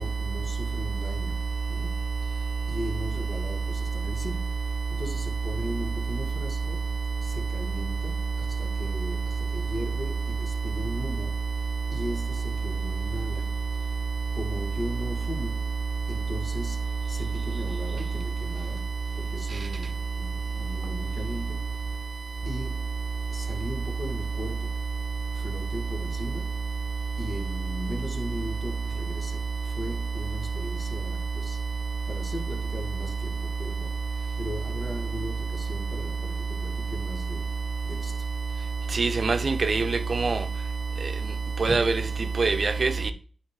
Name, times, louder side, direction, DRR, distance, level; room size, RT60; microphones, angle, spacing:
voice 1, 0.0-1.4 1.7-2.0 2.7-4.7 4.9-6.9 7.2-11.4 11.9-13.6 14.3-15.6 16.1-21.7 22.4-23.0 23.3-24.8 25.4-26.5 27.2-31.6 32.1-34.0 34.4-37.6 37.8-38.2 41.7-41.9, left 1 dB, 40° left, 1.7 m, -38 dB
voice 2, 39.0-39.8 40.1-40.4 41.6-41.9 42.4-42.9, right 4 dB, 55° right, 0.7 m, -23 dB
9.1 x 3.2 x 3.2 m
cardioid pair, 40°, 0 cm